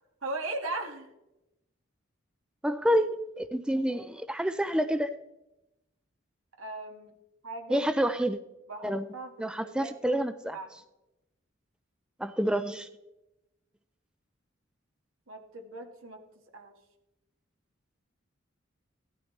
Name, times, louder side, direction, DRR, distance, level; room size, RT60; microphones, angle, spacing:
voice 1, 0.2-1.1 6.6-7.1 7.4-7.9 8.7-9.3 9.6-10.2 10.5-10.7 15.3-16.2 16.5-16.7, right 2 dB, 85° right, 1.9 m, -38 dB
voice 2, 2.6-5.1 7.7-8.4 8.8-9.1 9.4-10.6 12.2-12.9, equal, 5° right, 0.4 m, -28 dB
15.5 x 12.5 x 3.2 m
head